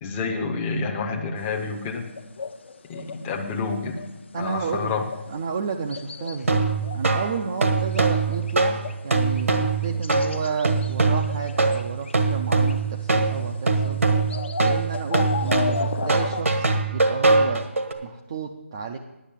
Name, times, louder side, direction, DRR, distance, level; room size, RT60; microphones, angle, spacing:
voice 1, 0.0-2.0 2.8-4.0 4.4-5.0, left 4 dB, 10° left, 1 dB, 0.7 m, -28 dB
sound 1, 1.4-4.1 4.4-5.5 5.9-6.5 6.7-7.6 7.9-8.5 8.8-9.6 9.8-12.7 13.3-16.4, left 4 dB, 60° left, 0.9 m, -34 dB
voice 2, 4.3-5.0 5.3-6.7 6.9-8.8 9.0-14.0 14.6-17.7 18.0-19.0, right 5 dB, 25° right, 3 dB, 0.5 m, -31 dB
sound 2, 6.4-17.9, right 3 dB, 80° right, 1.6 m, -22 dB
10.0 x 6.4 x 8.9 m, 0.99 s
hypercardioid pair, 170°, 7 cm